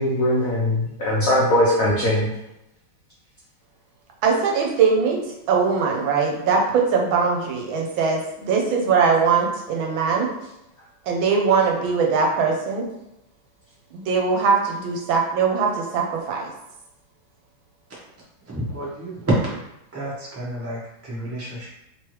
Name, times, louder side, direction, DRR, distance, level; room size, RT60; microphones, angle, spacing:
voice 1, 0.0-2.3, left 1 dB, 70° left, -6 dB, 0.8 m, -20 dB
voice 2, 4.2-5.2 5.5-10.3 11.1-12.9 13.9-16.5, right 5 dB, 80° right, 0 dB, 1.4 m, -21 dB
voice 3, 18.5-19.6 19.9-21.7, right 1 dB, 15° right, -7 dB, 0.4 m, -28 dB
3.3 x 3.1 x 3.1 m, 0.86 s
omnidirectional pair, 2.3 m